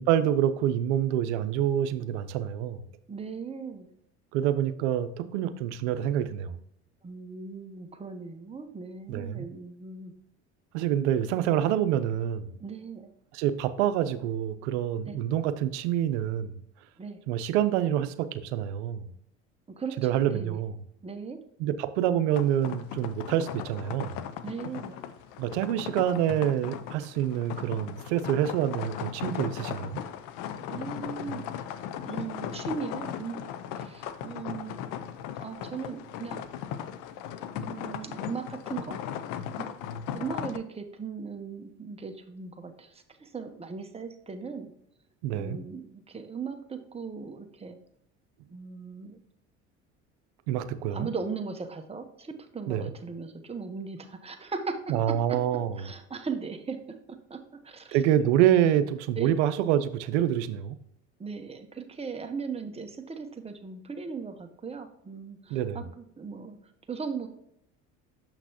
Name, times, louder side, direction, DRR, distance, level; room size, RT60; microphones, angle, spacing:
voice 1, 0.1-2.8 4.3-6.6 9.1-9.5 10.7-12.6 13.3-16.6 17.3-19.1 20.0-20.7 21.6-24.2 25.4-30.0 45.2-45.6 50.5-51.1 52.7-52.9 54.9-55.8 57.9-60.8 65.5-65.9, right 10 dB, 80° right, 12 dB, 0.7 m, -27 dB
voice 2, 3.1-3.9 7.0-10.1 12.6-13.1 15.0-15.1 17.0-17.2 19.8-20.0 20.3-20.6 21.0-21.4 24.4-25.0 30.7-31.4 32.0-33.5 33.7-34.8 35.4-36.4 37.5-39.0 39.6-39.8 40.1-44.7 45.3-47.8 48.5-49.2 50.9-54.8 55.8-56.8 57.3-57.4 57.6-58.3 59.1-59.3 61.2-66.6 66.9-67.3, right 5 dB, 15° right, 5 dB, 1.0 m, -38 dB
sound 1, 22.3-40.6, left 9 dB, 65° left, 0.7 m, -37 dB
6.8 x 5.9 x 2.9 m, 0.75 s
hypercardioid pair, 75°, 35 cm